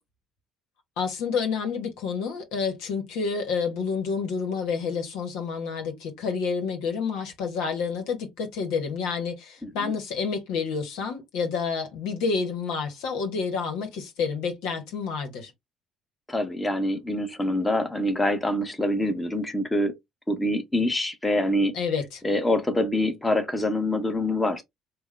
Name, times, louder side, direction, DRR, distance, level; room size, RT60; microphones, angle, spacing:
voice 1, 1.0-15.5 21.7-22.2, left 5 dB, 80° left, 1.1 m, -29 dB
voice 2, 9.6-9.9 16.3-19.9 20.3-21.7 22.2-24.6, left 1 dB, 15° left, 1.1 m, -25 dB
3.5 x 2.3 x 3.2 m
supercardioid pair, 75°, 0 cm